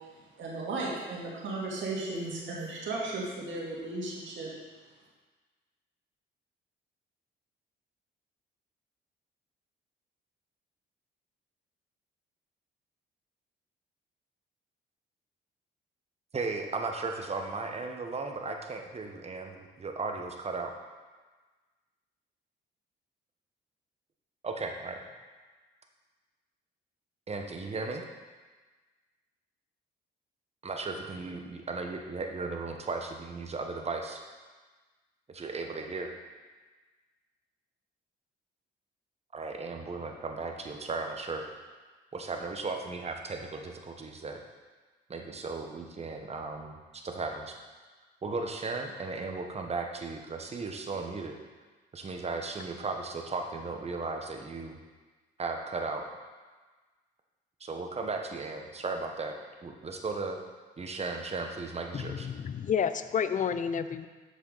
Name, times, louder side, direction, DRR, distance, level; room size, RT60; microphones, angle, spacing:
voice 1, 0.4-4.5, right 2 dB, 75° right, -4 dB, 2.2 m, -35 dB
voice 2, 16.3-20.7 24.4-25.1 27.3-28.0 30.6-34.2 35.3-36.1 39.3-41.4 42.1-44.4 45.1-47.5 48.2-51.4 51.9-54.8 55.4-56.0 57.6-59.3 59.6-60.4 60.8-62.3, right 3 dB, 30° right, 3 dB, 1.0 m, -36 dB
voice 3, 61.9-64.1, left 7 dB, 40° left, 12 dB, 0.4 m, -30 dB
7.6 x 6.7 x 4.0 m, 1.3 s
cardioid pair, 90°, 20 cm